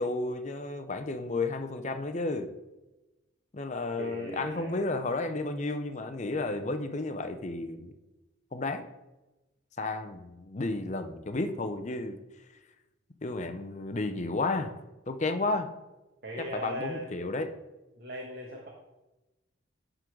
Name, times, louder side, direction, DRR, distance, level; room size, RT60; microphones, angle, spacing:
voice 1, 0.0-2.5 3.5-7.9 8.5-8.8 9.8-12.2 13.2-14.7 15.1-15.7 16.4-17.5, left 2 dB, 35° left, 8 dB, 0.6 m, -32 dB
voice 2, 4.0-4.8 16.2-17.1 18.0-18.7, equal, 55° right, -2 dB, 1.2 m, -38 dB
11.0 x 3.9 x 4.5 m, 1.0 s
head